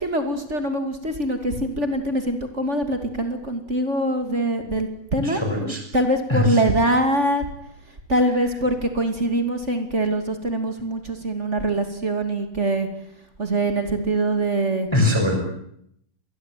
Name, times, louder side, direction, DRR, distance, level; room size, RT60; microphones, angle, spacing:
voice 1, 0.0-7.5 8.1-12.9 13.4-14.9, right 1 dB, 20° right, 7 dB, 2.3 m, -23 dB
voice 2, 5.2-5.8 6.3-6.6 14.9-15.4, left 1 dB, 5° left, 3 dB, 5.9 m, -21 dB
26.5 x 20.5 x 9.3 m, 0.73 s
omnidirectional pair, 4.3 m